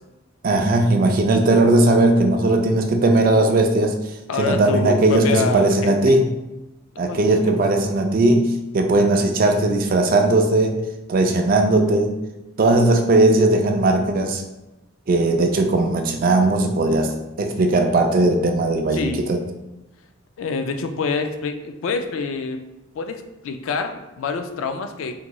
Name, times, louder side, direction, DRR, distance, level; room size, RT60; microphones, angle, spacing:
voice 1, 0.4-4.1 4.4-6.3 7.0-10.8 11.1-12.2 12.6-14.4 15.1-19.4, right 2 dB, 45° right, 5 dB, 0.3 m, -18 dB
voice 2, 4.3-6.1 7.0-7.6 18.9-19.3 20.4-22.6 23.0-25.2, left 4 dB, 85° left, 7 dB, 0.3 m, -26 dB
3.6 x 2.9 x 2.2 m, 0.97 s
head